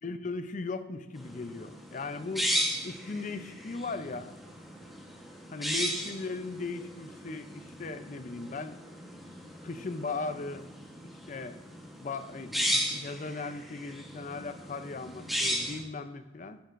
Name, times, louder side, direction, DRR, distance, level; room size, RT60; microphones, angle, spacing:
voice 1, 0.0-2.5 2.8-4.3 5.5-8.8 9.6-10.7 11.3-11.6 12.0-16.6, left 3 dB, 45° left, 10 dB, 0.5 m, -38 dB
sound 1, 1.2-15.8, equal, ahead, 1.1 m, -36 dB
10.0 x 7.9 x 2.5 m, 1.1 s
head